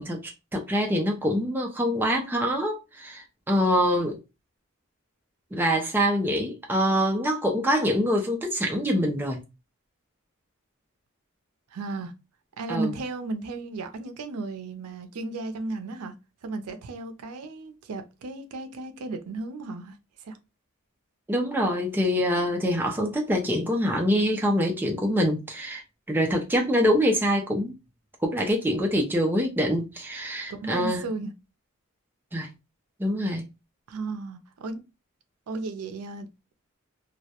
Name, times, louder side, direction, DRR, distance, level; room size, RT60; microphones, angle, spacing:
voice 1, 0.0-4.2 5.5-9.4 12.7-13.0 21.3-25.8 26.1-27.7 28.2-31.1 32.3-32.5 33.0-33.4, equal, 10° right, 0.3 m, -25 dB
voice 2, 11.7-12.1 12.6-16.1 16.4-20.4 30.5-31.3 33.9-34.8 35.5-36.3, right 3 dB, 85° right, 0.4 m, -34 dB
2.2 x 2.0 x 2.7 m
head